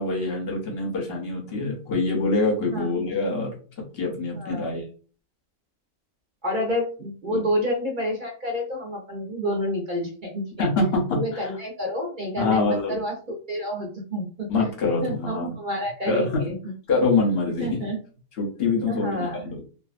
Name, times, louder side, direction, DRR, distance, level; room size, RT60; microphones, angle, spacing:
voice 1, 0.0-3.5 3.9-4.8 7.3-7.4 10.6-11.5 12.4-13.0 14.5-15.5 16.1-16.4 16.9-17.8 18.4-19.6, left 3 dB, 55° left, 1 dB, 0.7 m, -25 dB
voice 2, 4.3-4.7 6.4-10.4 11.1-14.5 15.0-16.7 17.6-18.0 18.9-19.5, equal, 55° right, -1 dB, 0.5 m, -29 dB
2.5 x 2.3 x 2.4 m, 0.39 s
omnidirectional pair, 1.6 m